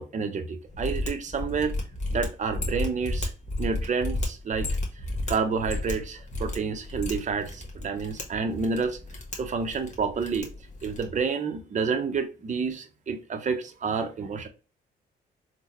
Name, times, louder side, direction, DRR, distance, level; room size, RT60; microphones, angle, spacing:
voice 1, 0.0-1.7 2.1-3.3 3.6-4.7 5.3-9.0 9.4-10.5 10.8-14.5, right 5 dB, 40° right, 0.6 m, -29 dB
Mechanisms, 0.7-11.2, left 2 dB, 40° left, 1.2 m, -33 dB
3.7 x 2.1 x 2.9 m
supercardioid pair, 65°, 20 cm